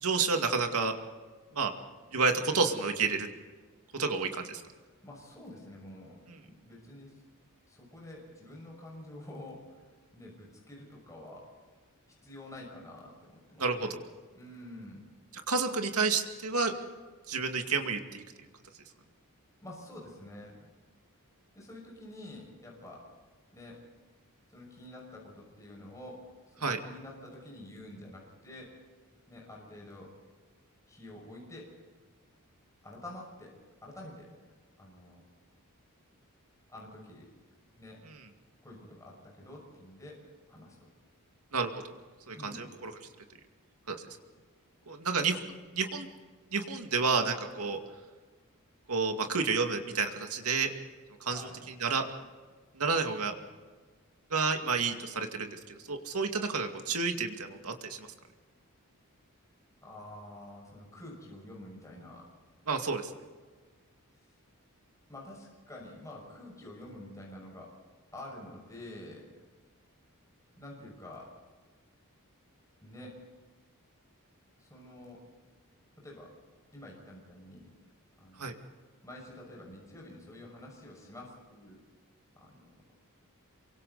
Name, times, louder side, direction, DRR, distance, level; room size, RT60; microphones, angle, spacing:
voice 1, 0.0-0.9 1.5-1.7 2.1-3.3 3.9-4.6 13.6-14.0 15.5-16.7 17.3-18.2 26.6-26.8 41.5-41.7 42.3-42.9 43.9-44.0 44.9-45.4 45.7-46.1 46.5-47.8 48.9-50.7 51.2-51.5 51.8-52.0 52.8-53.3 54.3-58.1 62.7-63.1 78.4-78.5, right 4 dB, 75° right, 5 dB, 2.3 m, -30 dB
voice 2, 5.0-7.1 7.7-11.5 12.2-13.9 14.3-15.0 19.6-20.7 21.5-23.1 23.5-23.8 24.5-28.7 29.3-30.1 30.9-31.7 32.8-33.5 33.8-34.3 34.8-35.2 36.7-37.3 37.8-38.0 38.6-40.2 40.5-40.9 42.3-42.7 51.3-51.6 59.8-62.3 65.1-67.7 68.1-69.2 70.6-71.3 72.8-73.2 74.6-75.2 76.0-76.3 76.7-77.7 78.2-78.6 79.0-81.8 82.4-82.6, left 1 dB, 15° left, -2 dB, 6.1 m, -48 dB
27.5 x 24.5 x 4.1 m, 1.4 s
head